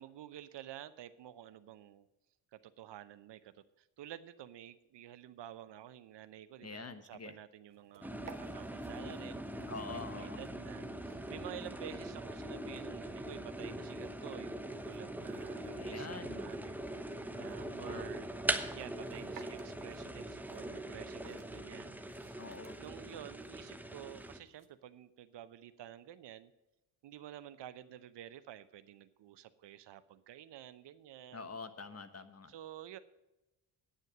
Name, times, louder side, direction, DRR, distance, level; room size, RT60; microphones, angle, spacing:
voice 1, 0.0-2.1 2.5-16.7 17.0-18.3 18.7-22.4 22.8-26.5 27.0-31.6 32.5-33.0, right 11 dB, 55° right, 14 dB, 0.8 m, -51 dB
voice 2, 6.6-7.3 9.7-10.5 15.7-16.5 17.3-18.1 22.4-22.8 31.3-32.5, left 4 dB, 30° left, 10 dB, 1.3 m, -46 dB
Chopping Salad, 7.7-24.7, right 6 dB, 40° right, 1.5 m, -62 dB
sound 1, 8.0-24.4, right 1 dB, 5° right, 1.0 m, -42 dB
9.6 x 9.0 x 6.0 m, 0.98 s
supercardioid pair, 60°, 50 cm